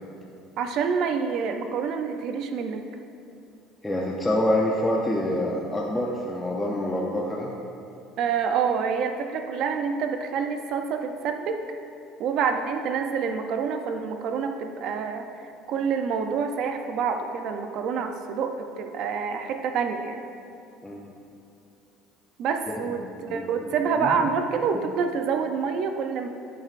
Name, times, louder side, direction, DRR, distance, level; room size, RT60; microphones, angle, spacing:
voice 1, 0.6-2.8 8.2-11.6 12.2-15.3 15.7-20.2 22.4-26.3, right 6 dB, 55° right, 6 dB, 0.5 m, -27 dB
voice 2, 3.8-7.5 20.8-21.0 23.3-23.4 24.0-24.2, left 1 dB, 10° left, -3 dB, 0.6 m, -26 dB
10.5 x 7.7 x 2.5 m, 2.7 s
cardioid pair, 140°, 0 cm